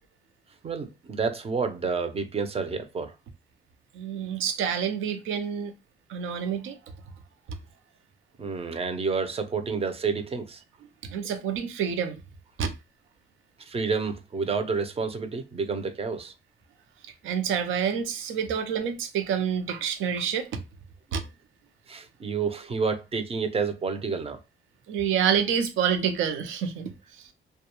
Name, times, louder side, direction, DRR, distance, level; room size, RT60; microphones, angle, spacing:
voice 1, 0.6-3.1 8.4-10.6 13.6-16.3 21.9-24.4, right 5 dB, 30° right, 0.5 m, -29 dB
voice 2, 3.9-5.7 6.1-6.8 11.0-12.2 12.6-12.7 17.2-20.6 21.1-21.2 24.9-27.3, right 7 dB, 85° right, 0.6 m, -28 dB
2.2 x 2.2 x 2.9 m
cardioid pair, 90°, 20 cm